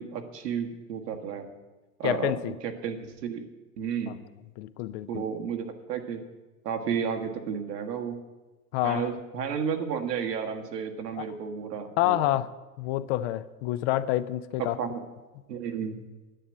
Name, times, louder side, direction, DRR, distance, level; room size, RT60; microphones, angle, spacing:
voice 1, 0.0-1.5 2.0-3.4 3.8-4.2 5.1-6.2 6.6-8.2 8.8-12.3 14.6-15.0 15.5-16.0, right 7 dB, 70° right, 6 dB, 1.7 m, -32 dB
voice 2, 2.0-2.5 4.1-4.2 4.6-5.3 8.7-9.1 11.2-11.3 12.0-12.5 12.8-14.8, left 15 dB, 45° left, 15 dB, 0.6 m, -28 dB
10.0 x 8.5 x 7.2 m, 1.2 s
hypercardioid pair, 105°, 50 cm